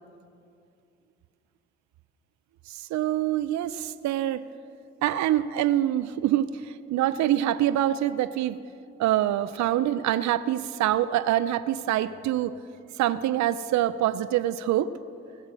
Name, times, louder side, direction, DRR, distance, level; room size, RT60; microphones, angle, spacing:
voice 1, 2.7-4.4 5.0-8.6 9.0-12.5 13.0-14.9, right 12 dB, 70° right, 15 dB, 0.5 m, -25 dB
17.5 x 8.1 x 6.1 m, 2.6 s
hypercardioid pair, 40°, 30 cm